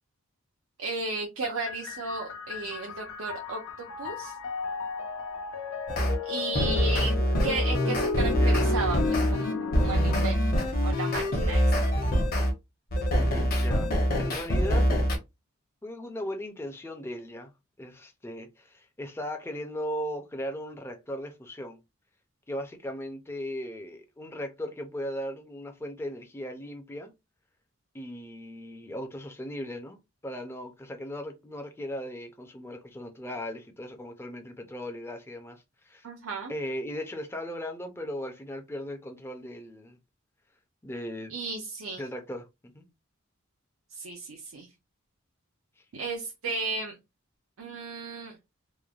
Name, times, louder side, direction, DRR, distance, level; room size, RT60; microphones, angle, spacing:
voice 1, 0.8-4.4 6.2-7.2 7.4-11.7 36.0-36.5 41.3-42.0 43.9-44.7 45.9-47.0 47.6-48.4, right 3 dB, 85° right, 0.6 m, -34 dB
sound 1, 1.4-10.3, left 4 dB, 75° left, 0.6 m, -33 dB
sound 2, 5.9-6.2 6.5-12.5 12.9-15.2, equal, 45° left, 0.7 m, -25 dB
voice 2, 8.2-8.8 13.2-13.9 14.2-14.9 15.8-17.5 17.8-21.8 22.5-27.1 27.9-36.1 36.5-40.0 40.8-41.3 42.0-42.8, equal, 10° left, 0.4 m, -37 dB
3.1 x 2.1 x 2.3 m
head